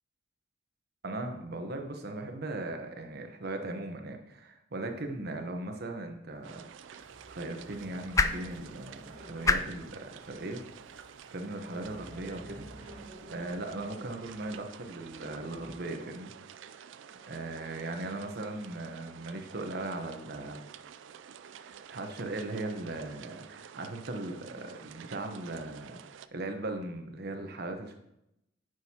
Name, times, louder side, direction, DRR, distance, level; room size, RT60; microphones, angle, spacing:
voice 1, 1.0-6.7 6.9-10.6 11.3-13.0 13.3-16.3 16.7-16.9 17.3-20.6 21.5-26.0 26.3-27.9, right 2 dB, 60° right, 5 dB, 1.0 m, -38 dB
sound 1, 6.3-12.6, left 3 dB, 15° left, 0.3 m, -35 dB
sound 2, 6.4-26.3, right 8 dB, 80° right, 0.4 m, -50 dB
sound 3, 7.0-15.8, right 1 dB, 35° right, 2.0 m, -52 dB
9.3 x 6.3 x 2.9 m, 0.84 s
head